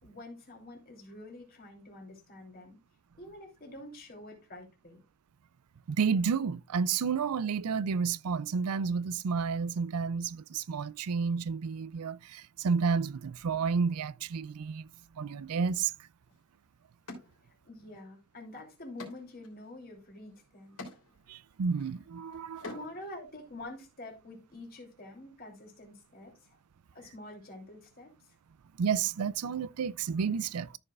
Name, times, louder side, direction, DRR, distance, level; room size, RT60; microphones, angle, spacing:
voice 1, 0.0-2.8 3.2-5.0 17.6-20.8 22.6-26.5 26.9-28.1, left 1 dB, 40° left, 3.0 m, -47 dB
voice 2, 5.9-14.9 15.1-16.1 21.3-22.7 28.8-30.8, right 5 dB, 85° right, 0.4 m, -31 dB
sound 1, 16.3-16.4 17.1-18.0 18.3-23.1, left 2 dB, 80° left, 3.3 m, -49 dB
13.5 x 5.4 x 2.4 m
head